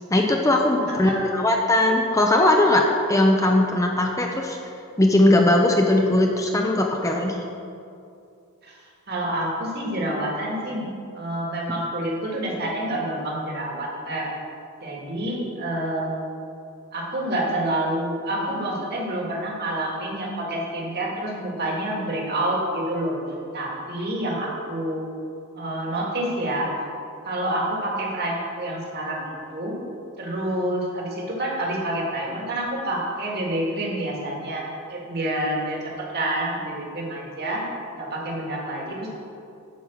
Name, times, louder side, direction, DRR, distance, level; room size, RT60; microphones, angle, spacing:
voice 1, 0.1-4.6 5.0-7.4, left 1 dB, 15° left, 1 dB, 0.6 m, -19 dB
voice 2, 0.8-1.4 8.6-8.8 9.1-10.9 11.1-14.3 14.8-16.2 16.9-23.2 23.5-25.0 25.6-26.7 27.2-29.8 30.2-37.7 37.9-39.2, right 1 dB, 50° right, -2 dB, 2.0 m, -28 dB
9.4 x 5.4 x 7.1 m, 2.5 s
head